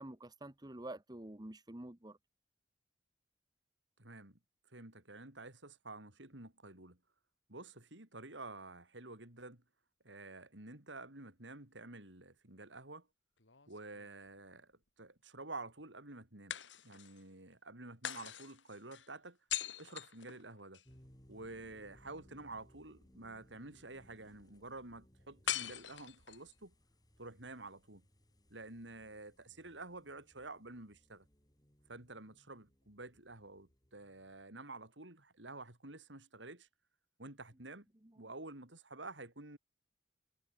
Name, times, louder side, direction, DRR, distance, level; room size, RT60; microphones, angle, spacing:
voice 1, 0.0-2.2, right 1 dB, 20° right, 1.3 m, -48 dB
voice 2, 4.0-4.4 4.7-7.0 7.5-9.6 10.0-13.1 13.7-14.7 15.0-16.6 16.8-19.4 19.8-20.8 21.3-26.7 27.2-28.0 28.5-31.3 31.9-36.7 37.2-37.9 38.1-39.6, right 2 dB, 85° right, 5.1 m, -50 dB
sound 1, 13.4-14.5 16.5-17.3 18.0-20.9 25.5-26.5, left 10 dB, 90° left, 2.5 m, -42 dB
sound 2, 20.9-34.4, equal, 20° left, 7.6 m, -66 dB
head